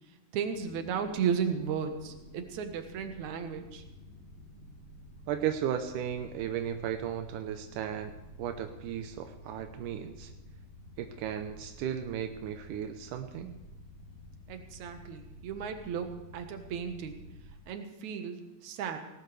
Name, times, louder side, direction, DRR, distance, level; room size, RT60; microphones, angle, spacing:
voice 1, 0.3-3.8 14.5-17.2 17.7-19.0, right 7 dB, 70° right, 6 dB, 2.7 m, -34 dB
sound 1, 0.5-17.5, left 1 dB, 80° left, 4.1 m, -51 dB
voice 2, 5.3-8.1 8.4-10.3 11.0-13.6, right 9 dB, 85° right, 6 dB, 2.4 m, -35 dB
19.0 x 18.5 x 3.3 m, 1.0 s
omnidirectional pair, 3.6 m